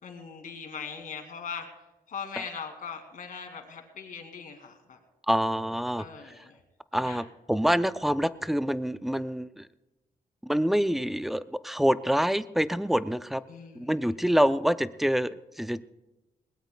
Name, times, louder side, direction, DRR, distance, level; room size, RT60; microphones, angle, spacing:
voice 1, 0.0-1.7 2.1-5.0 6.0-6.6 6.9-7.2 13.5-14.3, left 6 dB, 65° left, 4 dB, 2.2 m, -40 dB
voice 2, 5.3-6.0 6.9-9.7 10.4-13.4 13.8-15.8, equal, ahead, 13 dB, 0.4 m, -26 dB
21.0 x 19.5 x 2.2 m, 1.1 s
wide cardioid pair, 150°, 15 cm